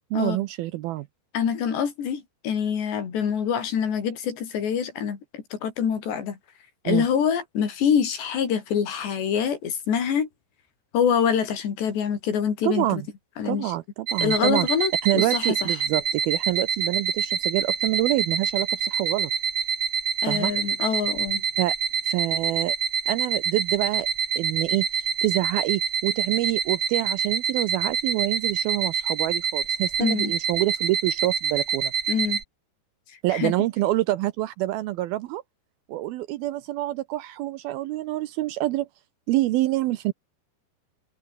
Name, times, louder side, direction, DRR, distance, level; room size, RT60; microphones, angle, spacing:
voice 1, 0.1-1.1 6.9-7.1 12.6-13.1 13.5-14.7 15.0-19.3 20.3-20.5 21.6-21.8 22.0-22.8 23.1-24.1 24.4-31.9 33.2-35.4 35.9-38.9 39.3-40.1, right 16 dB, 80° right, 2.3 m, -26 dB
voice 2, 1.3-6.4 6.9-10.3 10.9-13.0 13.4-13.7 14.2-15.7 20.2-21.4 30.0-30.3 32.1-32.4 33.3-33.5, left 7 dB, 80° left, 5.9 m, -25 dB
sound 1, 14.1-32.4, right 7 dB, 40° right, 2.7 m, -27 dB
omnidirectional pair, 4.9 m